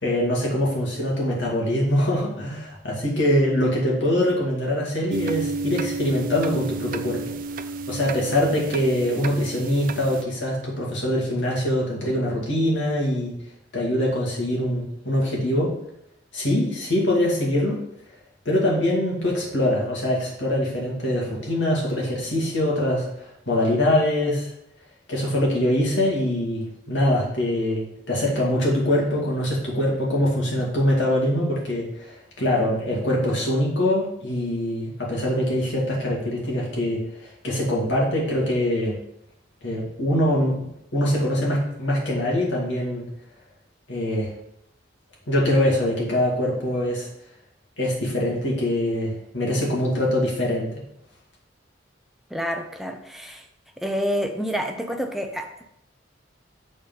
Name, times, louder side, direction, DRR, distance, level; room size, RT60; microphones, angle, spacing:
voice 1, 0.0-7.3 7.9-13.3 13.7-15.7 16.3-17.8 18.4-24.5 25.1-39.0 39.6-43.1 43.9-44.3 45.3-47.1 47.8-50.7, left 1 dB, 75° left, -4 dB, 2.5 m, -23 dB
sound 1, 5.1-10.2, right 3 dB, 45° right, 0.4 m, -31 dB
voice 2, 52.3-53.5 53.8-55.6, equal, ahead, 4 dB, 0.6 m, -28 dB
6.7 x 4.3 x 5.6 m, 0.78 s
head